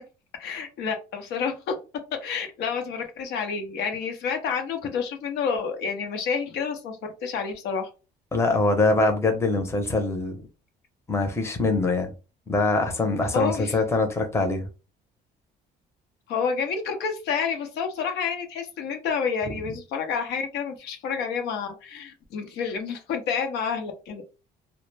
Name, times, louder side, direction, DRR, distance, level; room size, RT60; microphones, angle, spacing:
voice 1, 0.4-1.8 2.2-7.9 13.3-13.8 16.3-24.2, left 6 dB, 80° left, 0.6 m, -29 dB
voice 2, 8.3-10.4 11.1-12.1 12.5-14.7, left 2 dB, 15° left, 0.6 m, -23 dB
2.0 x 2.0 x 3.2 m
cardioid pair, 110°, 17 cm